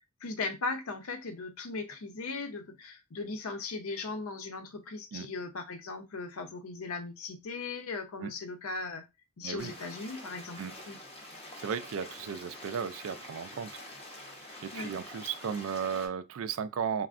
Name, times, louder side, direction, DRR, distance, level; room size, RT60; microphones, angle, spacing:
voice 1, 0.2-9.0 9.4-10.6 10.9-11.0 14.7-14.9, left 3 dB, 80° left, 0.6 m, -38 dB
sound 1, 9.6-16.1, left 1 dB, 25° left, 0.6 m, -46 dB
voice 2, 11.6-13.8 14.3-17.1, right 7 dB, 70° right, 0.3 m, -35 dB
3.4 x 2.1 x 2.4 m
head